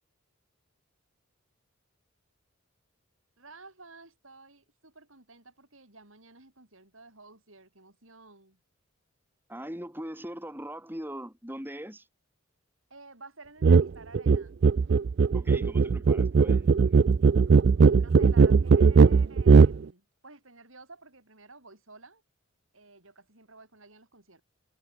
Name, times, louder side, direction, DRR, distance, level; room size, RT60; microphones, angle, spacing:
voice 1, 3.4-8.6 12.9-14.6 17.8-22.2 22.7-24.4, right 3 dB, 70° right, 7.9 m, -52 dB
voice 2, 9.5-12.1 15.3-17.1, equal, 10° right, 3.6 m, -41 dB
sound 1, 13.6-13.9 14.1-19.8, right 5 dB, 50° right, 0.4 m, -19 dB
head